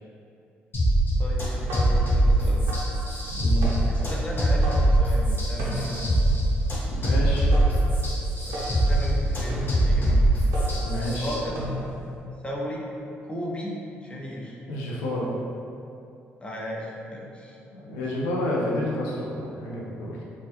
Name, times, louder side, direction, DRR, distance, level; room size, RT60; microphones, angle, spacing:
sound 1, 0.7-11.3, right 1 dB, 40° left, 1.0 m, -23 dB
voice 1, 1.2-2.8 3.9-6.1 8.5-10.2 11.2-11.6 12.4-12.9 13.2-14.6 16.4-18.0, equal, 20° left, -3 dB, 0.5 m, -35 dB
sound 2, 1.7-12.2, equal, 75° right, 0.4 m, -36 dB
voice 2, 3.3-3.7 6.8-7.5 10.8-11.3 14.7-15.3 17.7-20.2, left 1 dB, 85° left, -4 dB, 0.4 m, -30 dB
2.3 x 2.0 x 2.8 m, 2.6 s
hypercardioid pair, 50°, 6 cm